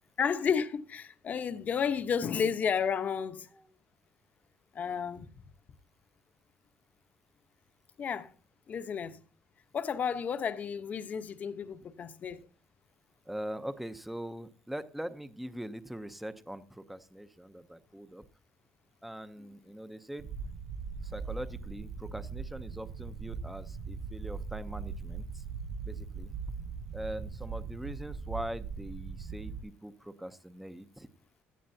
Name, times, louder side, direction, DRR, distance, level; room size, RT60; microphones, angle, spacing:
voice 1, 0.2-3.5 4.7-5.3 8.0-8.3 8.7-9.2 9.7-12.5, left 7 dB, 40° left, 1.0 m, -32 dB
voice 2, 13.3-18.2 19.0-20.3 21.0-25.4 25.8-26.3 26.9-31.1, right 1 dB, 5° right, 0.7 m, -42 dB
sound 1, 20.2-29.6, right 5 dB, 70° right, 5.6 m, -40 dB
16.5 x 12.5 x 2.8 m
cardioid pair, 135°, 4 cm